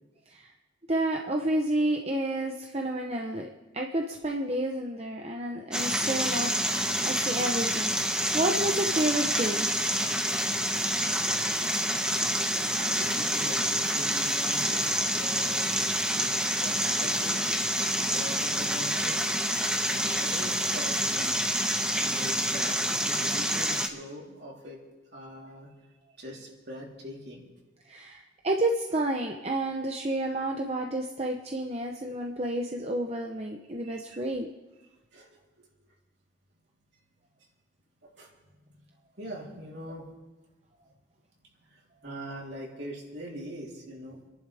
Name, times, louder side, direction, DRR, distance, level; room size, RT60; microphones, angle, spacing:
voice 1, 0.9-3.5 3.7-9.7 12.5-12.6 27.9-34.5, right 1 dB, 35° right, 2 dB, 0.9 m, -30 dB
sound 1, 5.7-23.9, equal, 5° right, 1.1 m, -27 dB
voice 2, 12.0-15.7 16.2-17.4 18.0-19.3 19.8-21.4 22.0-24.8 25.1-25.7 26.2-27.4 33.8-34.0 35.1-35.4 38.0-38.3 39.2-40.0 41.6-44.2, equal, 60° right, -3 dB, 3.6 m, -42 dB
29.0 x 11.0 x 3.5 m, 1.1 s
head